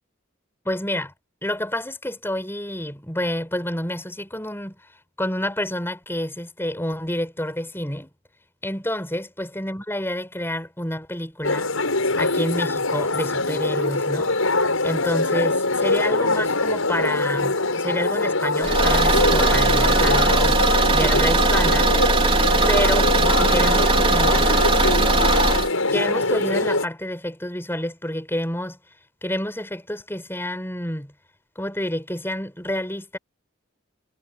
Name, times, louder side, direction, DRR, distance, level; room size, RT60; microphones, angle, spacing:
voice 1, 0.7-1.1 1.4-4.8 5.2-8.1 8.6-11.7 12.2-14.3 14.8-21.9 22.7-24.5 25.9-28.8 29.2-31.1 31.6-33.2, left 1 dB, 10° left, 7.1 m, -28 dB
sound 1, 11.4-26.9, left 2 dB, 80° left, 6.8 m, -23 dB
Car / Engine, 18.6-25.7, right 2 dB, 25° right, 3.7 m, -19 dB
head